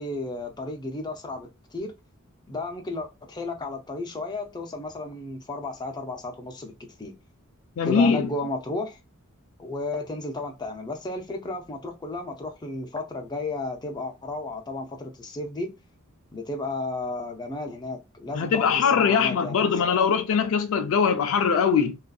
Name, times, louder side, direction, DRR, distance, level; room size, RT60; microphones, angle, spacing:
voice 1, 0.0-1.9 2.5-7.2 7.9-9.0 9.6-15.7 16.3-20.2, left 2 dB, 20° left, 0.5 m, -33 dB
voice 2, 7.8-8.3 18.3-22.0, left 6 dB, 70° left, 0.4 m, -22 dB
2.6 x 2.4 x 2.3 m
head